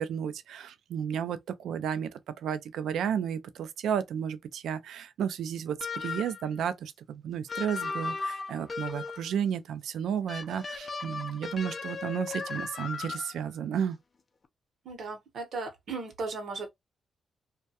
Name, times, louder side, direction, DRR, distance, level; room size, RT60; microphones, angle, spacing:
voice 1, 0.0-14.0, right 8 dB, 85° right, 0.3 m, -33 dB
sound 1, 5.8-6.5 7.5-9.3 10.3-13.5, left 4 dB, 45° left, 0.4 m, -36 dB
voice 2, 14.8-16.7, right 3 dB, 70° right, 0.8 m, -36 dB
2.3 x 2.1 x 2.7 m
cardioid pair, 60°, 0 cm